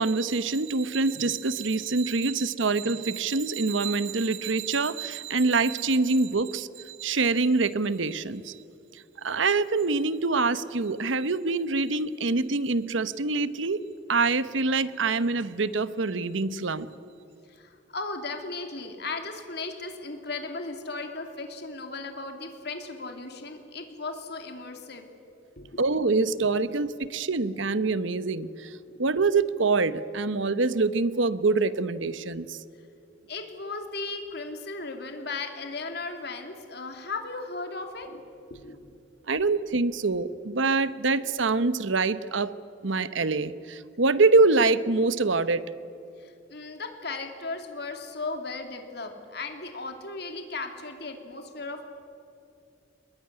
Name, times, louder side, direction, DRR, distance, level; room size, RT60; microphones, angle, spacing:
voice 1, 0.0-8.5 9.2-13.8 14.1-16.9 25.8-28.7 29.0-32.6 39.3-42.5 42.8-45.6, right 3 dB, 80° right, 14 dB, 1.0 m, -25 dB
voice 2, 17.5-25.1 25.6-25.8 28.9-29.0 33.3-38.2 38.5-38.8 46.2-51.9, left 3 dB, 55° left, 5 dB, 2.7 m, -36 dB
21.5 x 21.5 x 9.9 m, 2.6 s
head